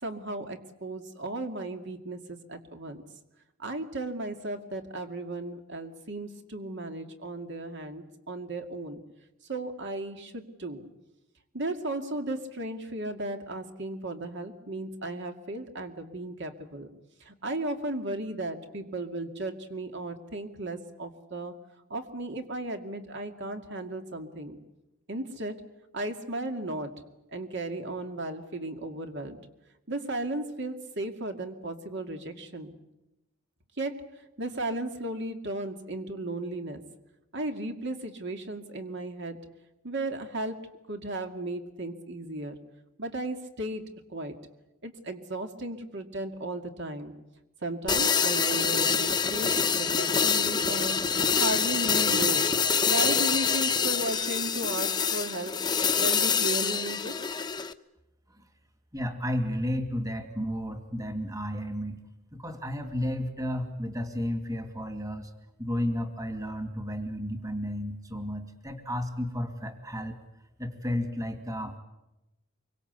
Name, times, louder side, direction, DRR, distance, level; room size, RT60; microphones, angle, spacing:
voice 1, 0.0-3.0 3.6-9.0 9.5-10.9 11.5-16.9 17.2-21.5 21.9-24.6 25.1-25.6 25.9-26.9 27.3-29.4 29.9-32.8 33.8-34.1 34.4-36.8 37.3-39.4 39.8-42.6 43.0-43.8 44.1-44.4 44.8-47.1 47.6-55.5 56.0-57.1, right 2 dB, 55° right, 5 dB, 2.4 m, -35 dB
sound 1, 47.9-57.7, left 6 dB, 20° left, 1.0 m, -26 dB
voice 2, 58.9-62.0 62.3-65.3 65.6-70.2 70.6-71.8, equal, 15° right, 7 dB, 2.4 m, -32 dB
25.5 x 24.0 x 8.2 m, 0.94 s
head